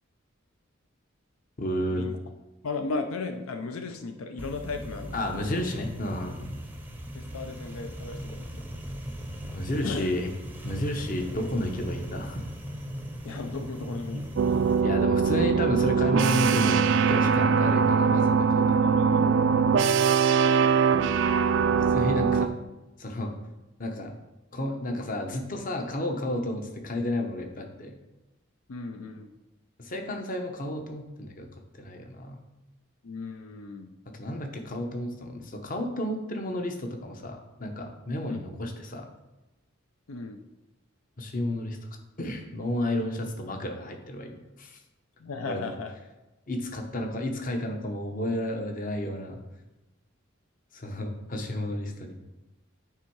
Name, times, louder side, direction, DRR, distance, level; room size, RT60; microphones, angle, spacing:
voice 1, 1.6-2.0 5.1-6.5 9.5-10.3 10.6-12.4 14.8-16.8 17.1-18.8 21.9-22.5 23.0-23.3 23.8-24.1 24.5-28.0 29.8-31.5 31.7-32.4 34.1-39.1 41.2-41.8 42.2-44.8 45.5-45.7 46.5-49.4 50.7-52.2, left 1 dB, 40° left, 4 dB, 0.8 m, -32 dB
voice 2, 2.6-5.7 7.1-8.5 9.8-10.1 13.2-14.3 18.8-19.2 28.7-29.3 33.0-33.9 38.3-38.4 40.1-40.4 45.2-45.9, left 3 dB, 80° left, 6 dB, 0.5 m, -35 dB
sound 1, 4.4-14.8, equal, 10° right, 0.6 m, -39 dB
sound 2, 14.4-22.5, right 6 dB, 60° right, 0.3 m, -22 dB
8.9 x 3.5 x 4.6 m, 1.0 s
head